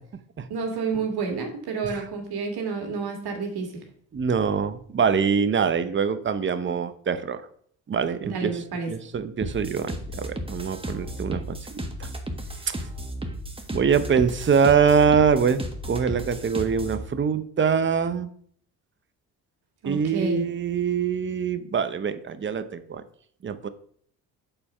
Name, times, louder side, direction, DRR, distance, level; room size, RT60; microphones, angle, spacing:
voice 1, 0.5-3.8 8.2-8.9 19.8-20.5, right 5 dB, 65° right, 3 dB, 2.0 m, -29 dB
voice 2, 4.1-7.4 7.9-8.5 8.9-12.1 12.7-12.8 13.7-15.6 15.9-18.3 19.8-23.0 23.4-23.7, right 6 dB, 30° right, 11 dB, 0.7 m, -24 dB
sound 1, 9.4-17.0, equal, 15° right, 1.4 m, -34 dB
6.9 x 4.3 x 5.4 m, 0.62 s
supercardioid pair, 60°, 42 cm